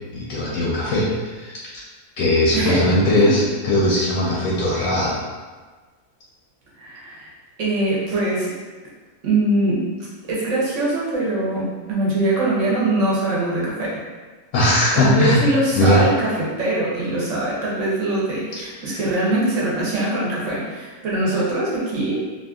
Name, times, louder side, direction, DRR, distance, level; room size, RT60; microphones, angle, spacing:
voice 1, 0.1-1.6 2.2-5.2 14.5-15.4 15.7-16.0 18.8-19.0, left 1 dB, 70° left, -6 dB, 0.9 m, -19 dB
voice 2, 2.5-2.9 3.2-3.3 6.8-7.3 7.6-8.5 9.2-9.9 10.3-14.0 14.9-22.2, right 2 dB, 60° right, -6 dB, 1.0 m, -22 dB
2.8 x 2.4 x 2.3 m, 1.4 s
omnidirectional pair, 1.6 m